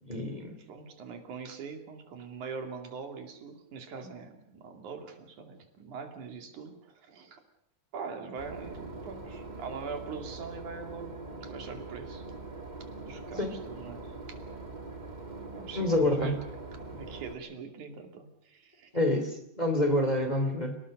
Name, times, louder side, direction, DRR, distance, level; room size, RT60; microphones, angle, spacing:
voice 1, 0.0-0.6 13.4-13.5 15.7-16.4 18.9-20.8, left 1 dB, 15° left, 6 dB, 2.9 m, -27 dB
voice 2, 0.7-7.4 7.9-12.3 13.0-14.1 15.5-16.4 16.9-18.9, right 5 dB, 90° right, 5 dB, 4.1 m, -42 dB
Boat Water vehicle / Engine, 8.4-17.3, right 3 dB, 15° right, 2.2 m, -43 dB
29.0 x 18.5 x 6.6 m, 0.74 s
omnidirectional pair, 3.3 m